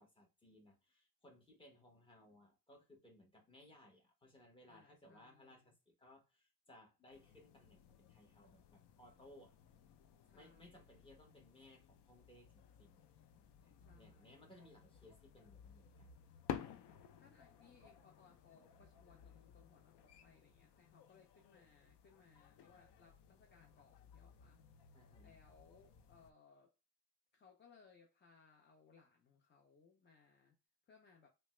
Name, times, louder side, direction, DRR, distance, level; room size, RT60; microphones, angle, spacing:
voice 1, 0.0-9.6 10.3-13.0 13.6-16.1 24.9-25.4, left 1 dB, 15° left, 0.8 m, -63 dB
voice 2, 4.7-5.7 10.2-10.8 13.8-14.4 17.2-26.7 27.3-30.6 30.9-31.3, left 5 dB, 30° left, 0.5 m, -67 dB
sound 1, 7.1-26.3, left 9 dB, 80° left, 0.5 m, -55 dB
3.3 x 2.1 x 3.0 m
wide cardioid pair, 165°, 40 cm